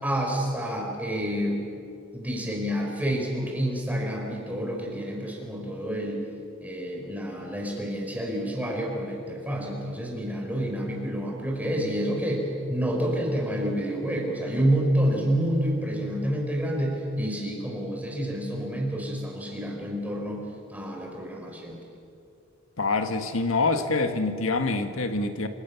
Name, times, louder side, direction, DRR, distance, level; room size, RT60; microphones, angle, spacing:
voice 1, 0.0-1.7 2.1-6.2 6.6-20.4 20.7-21.8, equal, 10° right, 0 dB, 5.3 m, -28 dB
voice 2, 22.8-25.5, left 3 dB, 80° left, 7 dB, 1.7 m, -25 dB
27.0 x 26.5 x 7.1 m, 2.6 s
head